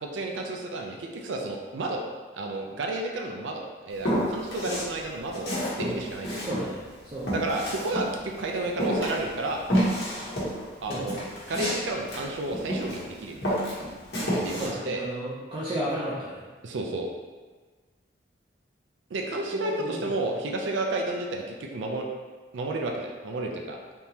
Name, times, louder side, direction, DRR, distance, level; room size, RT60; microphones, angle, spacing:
voice 1, 0.0-2.0 2.3-6.4 7.3-9.6 10.8-11.2 11.5-13.6 14.4-15.0 16.6-17.1 19.1-22.1 22.5-23.8, right 2 dB, 80° right, 1 dB, 0.4 m, -31 dB
Walk footsteps, 4.0-4.9 5.3-8.4 8.8-13.1 13.4-14.7, equal, 60° left, 1.0 m, -29 dB
voice 2, 6.4-6.8 7.0-7.3 10.9-11.1 14.6-16.4 19.5-20.0, right 1 dB, 30° right, -8 dB, 0.5 m, -33 dB
3.6 x 2.9 x 2.8 m, 1.4 s
head